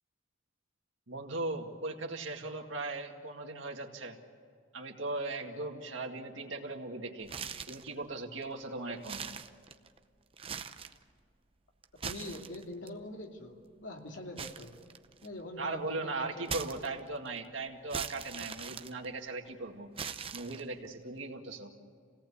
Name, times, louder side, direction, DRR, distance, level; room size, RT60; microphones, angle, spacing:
voice 1, 1.1-4.2 4.7-7.3 7.7-9.2 15.6-19.9 20.3-21.7, right 2 dB, 80° right, 3 dB, 2.1 m, -38 dB
sound 1, 7.2-7.9 8.4-8.5 9.0-10.0 10.3-11.0 11.8-12.9 14.4-15.4 16.5-17.3 17.9-19.5 20.0-20.9, right 6 dB, 30° right, 0.7 m, -41 dB
voice 2, 11.9-14.7 15.2-16.8, left 1 dB, 80° left, 1 dB, 2.7 m, -44 dB
27.5 x 18.0 x 8.6 m, 2.1 s
head